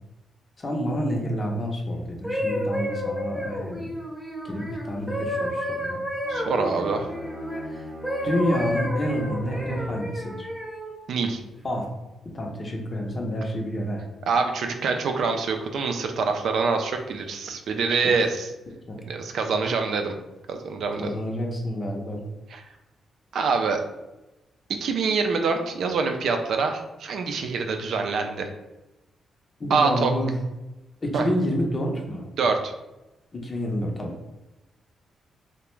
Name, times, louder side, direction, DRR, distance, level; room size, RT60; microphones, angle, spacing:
voice 1, 0.6-3.8 4.4-6.0 8.2-10.5 11.6-11.9 12.3-14.0 18.0-18.1 18.9-19.0 21.0-22.2 29.6-30.3 31.0-32.3 33.3-34.1, equal, 35° left, 1 dB, 0.6 m, -28 dB
sound 1, 2.0-7.6 8.0-10.9 11.6-11.8, equal, ahead, 0.6 m, -31 dB
Bowed string instrument, 6.2-10.0, left 1 dB, 35° right, 0.7 m, -39 dB
voice 2, 6.3-7.1 11.1-11.4 14.3-18.5 19.1-20.1 20.5-21.1 22.5-22.6 23.3-23.8 24.7-28.5 29.7-30.1 31.1-31.2 32.4-32.7, right 4 dB, 75° right, 5 dB, 0.3 m, -25 dB
2.4 x 2.1 x 3.0 m, 0.99 s
cardioid pair, 80°, 0 cm